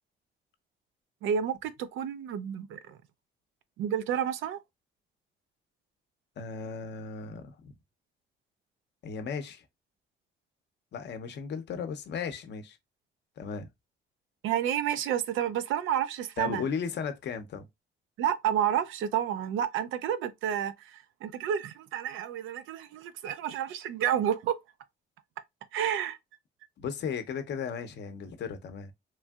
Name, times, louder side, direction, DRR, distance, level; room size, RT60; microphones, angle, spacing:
voice 1, 1.2-3.0 3.8-4.6 14.4-16.6 18.2-24.6 25.7-26.2, right 9 dB, 85° right, 0.4 m, -30 dB
voice 2, 6.4-7.7 9.0-9.6 10.9-12.8 13.4-13.7 16.4-17.7 26.8-28.9, left 6 dB, 60° left, 0.6 m, -36 dB
3.1 x 2.6 x 2.3 m
cardioid pair, 90°, 20 cm